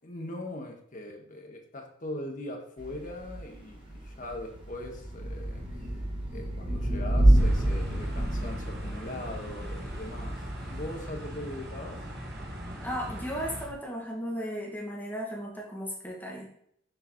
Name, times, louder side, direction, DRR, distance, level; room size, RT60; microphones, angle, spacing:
voice 1, 0.0-5.9 6.3-10.3 10.7-12.0, left 1 dB, 40° left, 2 dB, 1.2 m, -40 dB
Thunder / Rain, 2.8-11.0, right 1 dB, 25° right, 1.6 m, -28 dB
sound 1, 7.3-13.7, equal, 50° right, 1.5 m, -40 dB
voice 2, 12.8-16.5, equal, 10° left, -3 dB, 1.5 m, -35 dB
6.7 x 4.0 x 4.4 m, 0.67 s
head